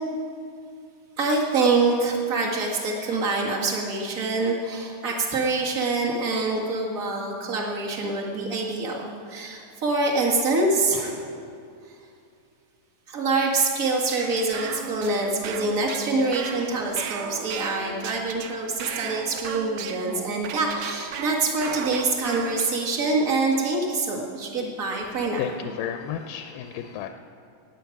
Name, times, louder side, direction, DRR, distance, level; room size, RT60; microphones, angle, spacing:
voice 1, 1.2-11.4 13.1-25.4, right 3 dB, 35° right, -1 dB, 1.4 m, -25 dB
sound 1, 14.1-22.9, right 8 dB, 85° right, 2.4 m, -36 dB
voice 2, 25.4-27.1, left 9 dB, 90° left, 6 dB, 2.3 m, -32 dB
18.5 x 9.3 x 5.8 m, 2.4 s
omnidirectional pair, 3.9 m